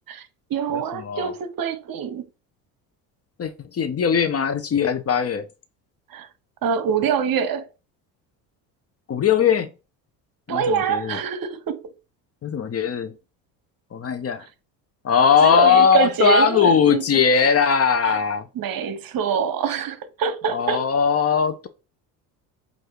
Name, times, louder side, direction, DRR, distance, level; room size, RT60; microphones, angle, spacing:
voice 1, 0.1-2.2 6.1-6.3 6.6-7.7 10.5-11.9 15.4-17.2 18.0-18.2 18.5-20.9, right 7 dB, 45° right, 1.1 m, -25 dB
voice 2, 0.7-1.3 3.4-5.5 9.1-9.7 10.5-11.2 12.4-13.1 13.9-14.5 15.0-18.4 20.5-21.7, left 7 dB, 30° left, 0.8 m, -19 dB
7.7 x 2.8 x 4.6 m
hypercardioid pair, 75°, 48 cm